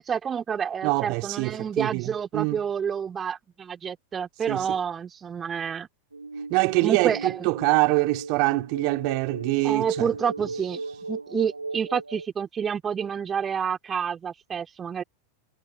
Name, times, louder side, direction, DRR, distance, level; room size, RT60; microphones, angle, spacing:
voice 1, 0.0-5.9 6.8-7.5 9.6-10.8 11.1-15.0, right 7 dB, 20° right, 2.9 m, -29 dB
voice 2, 0.8-2.6 4.5-4.7 6.5-10.1, right 34 dB, 45° right, 3.0 m, -24 dB
sound 1, 6.1-12.3, right 3 dB, 80° right, 2.3 m, -37 dB
figure-of-eight pair, 90°, 0 cm